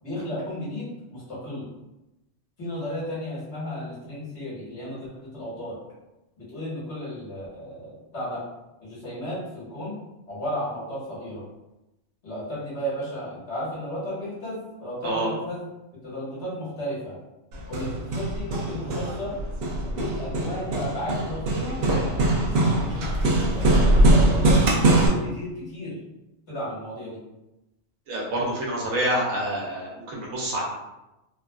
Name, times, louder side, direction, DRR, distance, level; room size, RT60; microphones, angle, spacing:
voice 1, 0.0-1.6 2.6-5.8 6.4-8.4 8.8-10.0 10.3-11.4 12.2-15.7 16.0-17.2 17.7-19.4 19.8-21.8 22.5-23.3 23.5-24.6 25.0-26.0 26.5-27.2, left 1 dB, 55° left, -9 dB, 1.6 m, -33 dB
Hammer, 17.5-25.1, right 1 dB, 60° right, 0.7 m, -22 dB
voice 2, 28.1-30.6, right 1 dB, 80° right, -3 dB, 1.2 m, -27 dB
3.2 x 2.4 x 2.2 m, 0.96 s
omnidirectional pair, 1.4 m